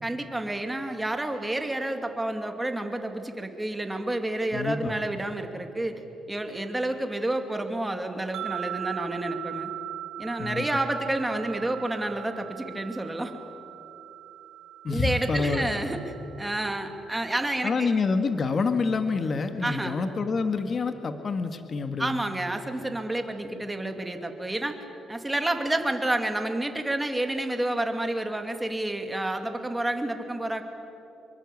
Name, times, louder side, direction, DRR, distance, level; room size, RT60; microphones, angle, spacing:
voice 1, 0.0-6.0 6.3-9.7 10.2-13.3 14.9-17.9 19.6-20.0 22.0-24.8 25.1-30.6, right 1 dB, 10° right, 6 dB, 2.5 m, -29 dB
voice 2, 4.5-5.0 10.4-10.7 14.8-15.7 17.6-22.2, left 4 dB, 40° left, 8 dB, 1.7 m, -27 dB
sound 1, 8.3-17.6, right 13 dB, 70° right, 0.7 m, -40 dB
26.0 x 23.0 x 8.5 m, 2.8 s
cardioid pair, 105°, 0 cm